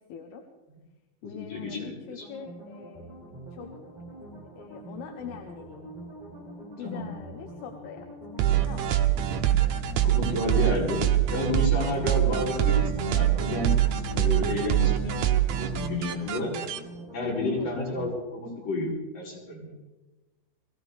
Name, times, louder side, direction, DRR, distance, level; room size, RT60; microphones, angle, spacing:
voice 1, 0.1-0.4 1.2-3.1 3.5-3.7 4.6-5.8 6.8-8.1 8.6-8.9 17.4-17.8, left 7 dB, 80° left, 5 dB, 3.1 m, -43 dB
voice 2, 1.2-2.3 6.8-7.1 10.0-11.0 11.3-15.1 15.5-16.5 17.1-19.7, left 2 dB, 60° left, -5 dB, 7.0 m, -31 dB
sound 1, 2.2-18.2, right 1 dB, 10° right, 5.4 m, -44 dB
sound 2, 8.4-16.8, right 11 dB, 80° right, 1.6 m, -24 dB
22.5 x 16.5 x 3.5 m, 1.1 s
omnidirectional pair, 4.6 m